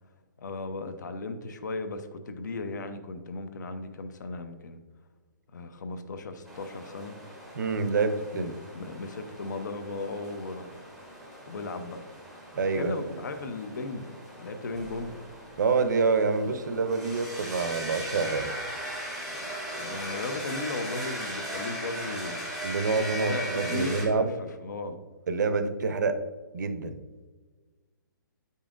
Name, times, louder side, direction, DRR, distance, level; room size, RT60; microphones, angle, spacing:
voice 1, 0.4-4.8 5.5-7.1 8.3-8.5 8.7-10.7 11.5-12.0 12.7-14.1 14.4-15.1 19.5-22.4 23.2-25.0, left 3 dB, 60° left, 8 dB, 0.8 m, -36 dB
sound 1, 6.5-24.1, equal, ahead, 0.7 m, -39 dB
voice 2, 7.6-8.5 12.6-12.9 15.6-18.5 22.6-24.3 25.3-26.2 26.5-27.0, right 4 dB, 60° right, 9 dB, 0.7 m, -27 dB
8.1 x 5.5 x 2.5 m, 1.3 s
hypercardioid pair, 175°, 11 cm